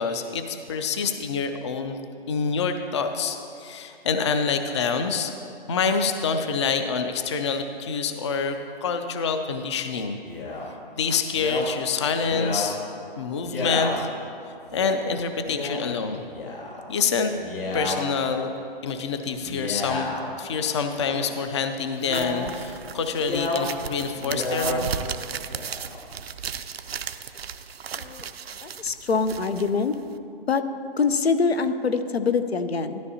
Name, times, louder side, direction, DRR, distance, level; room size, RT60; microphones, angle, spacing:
voice 1, 0.0-2.0 2.3-5.3 5.7-8.6 8.8-10.2 11.0-12.8 13.2-14.1 14.7-16.3 16.9-17.3 17.7-18.5 18.8-20.1 20.4-24.9, left 5 dB, 30° left, 7 dB, 0.4 m, -26 dB
Male speech man speaking, 10.2-10.7 11.3-11.6 12.2-12.7 13.4-13.9 14.7-15.0 15.4-15.8 16.3-16.8 17.3-18.0 19.3-20.3 20.9-21.4 22.0-22.5 23.1-23.6 24.1-24.8 25.4-26.0, left 2 dB, 65° left, 2.5 m, -31 dB
sound 1, 22.0-30.2, right 7 dB, 75° right, 0.6 m, -36 dB
voice 2, 28.0-28.3 28.6-29.9 30.5-30.6 31.0-33.0, left 5 dB, 85° left, 10 dB, 0.7 m, -24 dB
12.5 x 12.0 x 2.8 m, 2.6 s
figure-of-eight pair, 140°, 31 cm